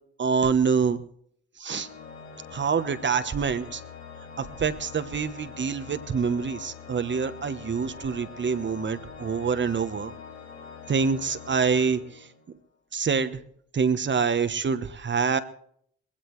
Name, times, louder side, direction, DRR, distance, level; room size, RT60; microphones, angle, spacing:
voice 1, 0.2-1.0 1.6-1.9 2.5-3.8 4.4-10.1 10.9-12.3 12.9-13.4 13.7-15.4, right 5 dB, 35° right, 11 dB, 1.1 m, -26 dB
Organ, 1.7-12.6, left 6 dB, 45° left, 4.1 m, -44 dB
20.5 x 16.0 x 3.2 m, 0.65 s
supercardioid pair, 65°, 31 cm